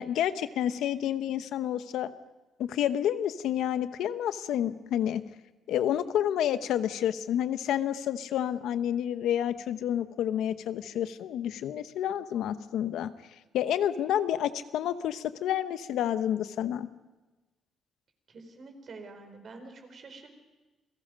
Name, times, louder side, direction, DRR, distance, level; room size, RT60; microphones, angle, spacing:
voice 1, 0.0-2.1 2.6-5.2 5.7-13.1 13.5-16.9, left 10 dB, 80° left, 12 dB, 0.9 m, -29 dB
voice 2, 18.3-20.3, right 3 dB, 50° right, 6 dB, 4.3 m, -47 dB
28.5 x 17.5 x 5.2 m, 1.2 s
cardioid pair, 90°, 0 cm